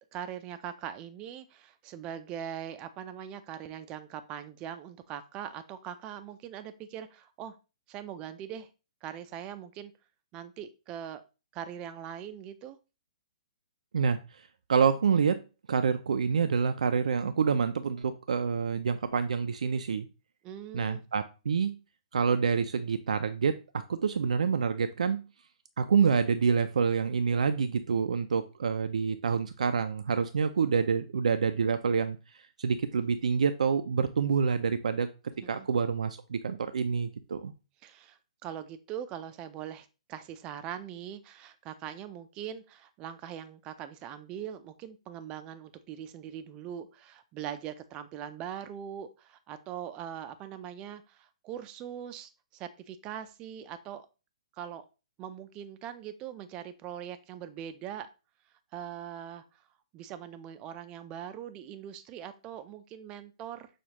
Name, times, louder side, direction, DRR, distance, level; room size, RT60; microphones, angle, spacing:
voice 1, 0.1-7.6 7.9-8.7 9.0-9.9 10.3-11.2 11.5-12.8 20.4-21.0 35.4-35.7 37.8-54.1 54.6-54.8 55.2-58.1 58.7-59.4 59.9-63.7, right 9 dB, 25° right, 10 dB, 0.4 m, -41 dB
voice 2, 14.7-15.4 15.7-20.1 20.7-21.7 22.1-25.2 25.8-32.2 32.6-35.1 35.5-37.5, right 6 dB, 80° right, 9 dB, 0.4 m, -27 dB
6.2 x 2.4 x 2.9 m, 0.31 s
hypercardioid pair, 145°, 4 cm